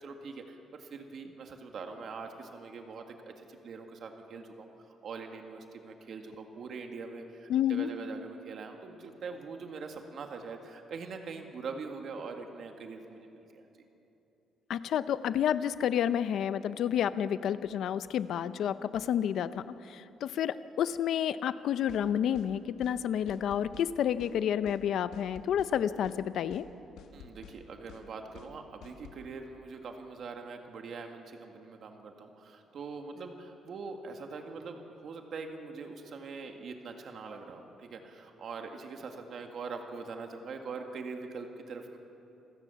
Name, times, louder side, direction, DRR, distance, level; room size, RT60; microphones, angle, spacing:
voice 1, 0.0-13.7 27.1-42.0, right 4 dB, 50° right, 4 dB, 1.9 m, -43 dB
voice 2, 7.5-7.9 14.7-26.6, left 9 dB, 65° left, 13 dB, 0.7 m, -30 dB
sound 1, 21.9-22.1 22.4-22.5 22.8-23.0 23.3-23.9 24.2-24.4 24.7-24.8 25.1-25.7 26.0-26.2 26.5-26.7 27.0-27.6 27.9-28.1 28.4-28.5 28.8-29.2, left 9 dB, 90° left, 1.4 m, -51 dB
27.0 x 16.0 x 7.0 m, 2.9 s
cardioid pair, 155°, 0 cm